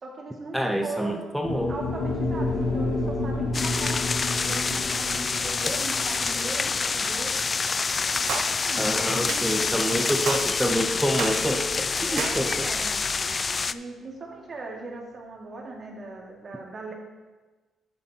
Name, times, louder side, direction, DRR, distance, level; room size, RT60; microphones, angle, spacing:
voice 1, 0.0-1.3 1.7-4.0 4.3-7.4 8.1-9.7 12.1-13.0 13.6-16.9, right 3 dB, 40° right, -1 dB, 2.1 m, -39 dB
voice 2, 0.5-1.7 8.8-12.7, equal, ahead, 4 dB, 0.7 m, -27 dB
sound 1, 1.4-9.7, left 2 dB, 90° left, 2.0 m, -31 dB
sound 2, 3.5-13.7, left 4 dB, 35° left, 0.3 m, -27 dB
sound 3, 8.3-8.5 9.3-9.5 10.3-10.5 11.2-11.4 12.2-12.4, right 6 dB, 70° right, 0.8 m, -30 dB
10.5 x 8.8 x 2.9 m, 1.3 s
cardioid pair, 90°, 0 cm